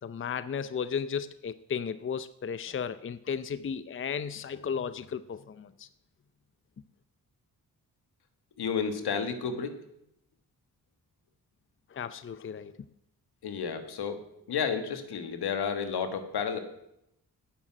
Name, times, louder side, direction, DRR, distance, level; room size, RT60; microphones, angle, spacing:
voice 1, 0.0-5.9 11.9-12.8, left 7 dB, 35° left, 14 dB, 0.6 m, -34 dB
voice 2, 8.6-9.7 13.4-14.2 14.5-16.6, left 6 dB, 80° left, 8 dB, 1.5 m, -31 dB
9.2 x 6.6 x 8.7 m, 0.79 s
cardioid pair, 65°, 38 cm